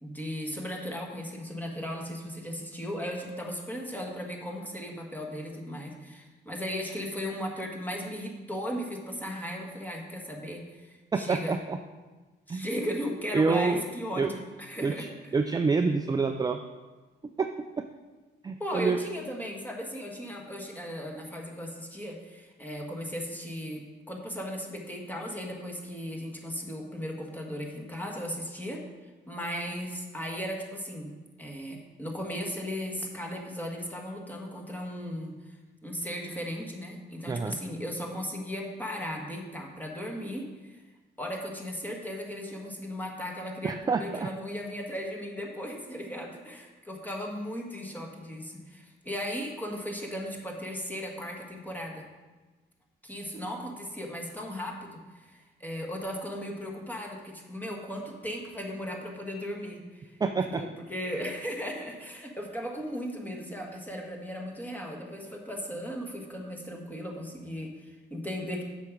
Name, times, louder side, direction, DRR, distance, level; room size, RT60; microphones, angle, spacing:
voice 1, 0.0-11.6 12.5-15.1 18.6-28.8 29.3-40.8 41.2-52.1 53.0-60.1 60.4-68.6, equal, 10° left, 0 dB, 1.6 m, -36 dB
voice 2, 11.1-11.8 12.5-12.7 13.3-13.8 14.2-14.3 14.8-15.1 15.3-16.6 17.4-17.5 17.8-17.9 18.4-19.0 37.3-37.6 43.6-44.3 60.2-60.6, right 4 dB, 20° right, 6 dB, 0.4 m, -27 dB
7.5 x 6.1 x 5.2 m, 1.2 s
cardioid pair, 90°, 20 cm